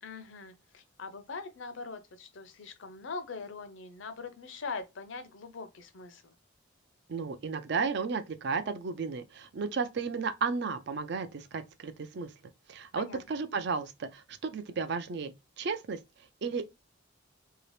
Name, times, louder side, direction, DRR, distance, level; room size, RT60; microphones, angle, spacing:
voice 1, 0.0-6.3 12.9-13.4, left 4 dB, 70° left, 0.6 m, -42 dB
voice 2, 7.1-12.3 12.7-15.3 15.6-16.0 16.4-16.6, right 5 dB, 55° right, 0.4 m, -33 dB
2.8 x 2.8 x 3.2 m
head